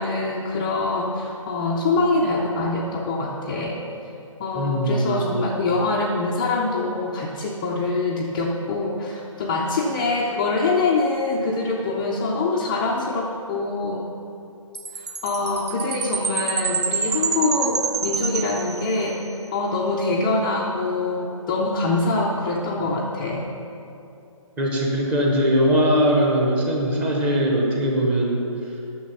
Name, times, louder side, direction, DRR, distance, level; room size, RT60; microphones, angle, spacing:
voice 1, 0.0-3.8 4.4-14.0 14.9-19.2 19.5-23.5, left 3 dB, 15° left, -4 dB, 0.4 m, -24 dB
voice 2, 4.5-5.4 24.6-28.4, equal, 10° right, -1 dB, 0.8 m, -21 dB
Chime, 14.8-19.2, right 6 dB, 50° right, 0.7 m, -27 dB
9.6 x 6.6 x 6.8 m, 2.7 s
hypercardioid pair, 155°, 18 cm